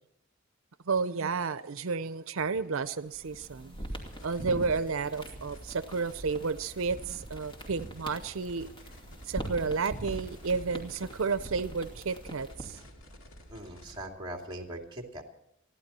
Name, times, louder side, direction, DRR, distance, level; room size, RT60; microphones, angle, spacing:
voice 1, 0.9-3.8 4.2-8.7 9.2-12.8, right 4 dB, 80° right, 0.6 m, -31 dB
sound 1, 3.0-12.8, right 1 dB, 25° left, 2.6 m, -43 dB
sound 2, 4.1-14.1, equal, 75° left, 2.4 m, -51 dB
voice 2, 13.5-15.2, right 1 dB, 25° right, 2.6 m, -41 dB
29.0 x 11.5 x 4.3 m
head